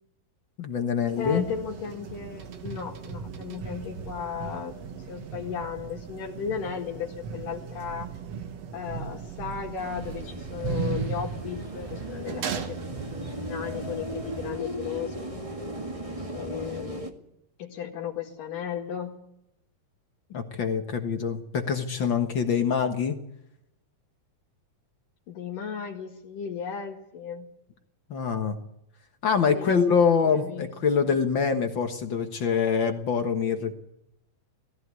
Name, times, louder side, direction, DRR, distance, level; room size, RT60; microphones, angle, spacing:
voice 1, 0.6-1.4 20.3-23.2 28.1-28.6 29.2-33.7, left 6 dB, 55° left, 6 dB, 1.4 m, -25 dB
sound 1, 1.1-14.6, right 6 dB, 60° right, 2.1 m, -37 dB
voice 2, 1.2-8.1 8.7-15.3 16.3-17.1 17.6-19.2 25.3-27.5 29.5-30.7 31.0-31.2, left 7 dB, 75° left, 0 dB, 3.5 m, -35 dB
sound 2, 9.8-17.1, right 1 dB, 15° right, 1.1 m, -37 dB
18.5 x 15.5 x 9.6 m, 0.80 s
omnidirectional pair, 3.9 m